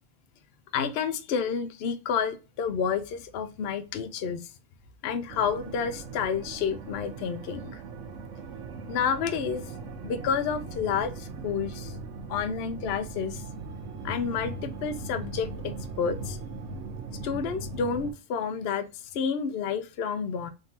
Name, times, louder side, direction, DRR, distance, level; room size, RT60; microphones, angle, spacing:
voice 1, 0.7-4.5 5.0-7.8 8.9-9.6 10.0-11.9 12.3-13.4 14.0-16.4 17.2-18.9 19.1-20.5, left 6 dB, 60° left, 0.8 m, -30 dB
sound 1, 5.3-18.1, right 3 dB, 75° right, 1.1 m, -39 dB
3.7 x 2.7 x 4.2 m
omnidirectional pair, 1.3 m